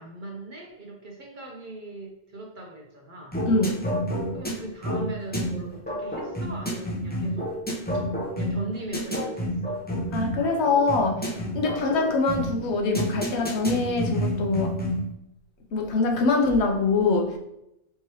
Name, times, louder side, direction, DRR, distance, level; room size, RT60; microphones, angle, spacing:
voice 1, 0.0-3.4 4.3-7.6 8.3-9.8, right 2 dB, 50° right, 0 dB, 0.7 m, -39 dB
sound 1, 3.3-15.1, equal, 10° left, 0.5 m, -29 dB
voice 2, 3.5-3.9 10.1-14.8 15.7-17.4, left 3 dB, 65° left, 2 dB, 0.9 m, -24 dB
4.5 x 3.0 x 2.9 m, 0.84 s
omnidirectional pair, 1.3 m